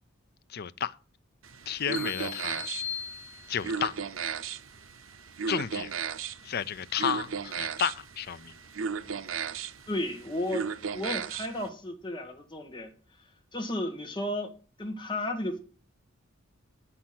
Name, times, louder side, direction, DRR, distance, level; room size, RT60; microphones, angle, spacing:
voice 1, 0.5-1.0 1.7-2.6 3.5-4.0 5.5-5.9 6.4-8.5, left 8 dB, 50° left, 0.5 m, -32 dB
sound 1, 1.4-11.7, right 6 dB, 90° right, 0.7 m, -36 dB
sound 2, 1.9-3.9, left 8 dB, 75° left, 1.3 m, -38 dB
voice 2, 9.9-12.9 13.5-14.5 14.8-15.6, left 1 dB, 25° left, 1.7 m, -33 dB
8.6 x 5.8 x 7.8 m
head